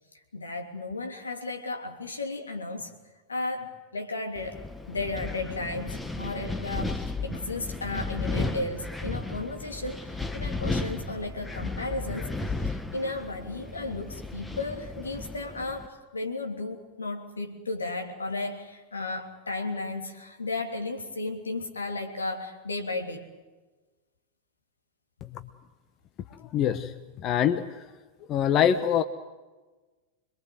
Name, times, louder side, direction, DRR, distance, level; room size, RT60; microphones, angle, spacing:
voice 1, 0.3-2.9 3.3-4.6 4.9-12.3 12.6-23.3, left 2 dB, 75° left, 4 dB, 3.2 m, -34 dB
Wind, 4.3-15.9, left 3 dB, 10° left, 1.5 m, -34 dB
voice 2, 26.4-26.9 27.2-27.8 28.3-29.0, left 9 dB, 35° left, 11 dB, 1.1 m, -24 dB
26.5 x 22.0 x 7.8 m, 1.3 s
figure-of-eight pair, 90°, 0 cm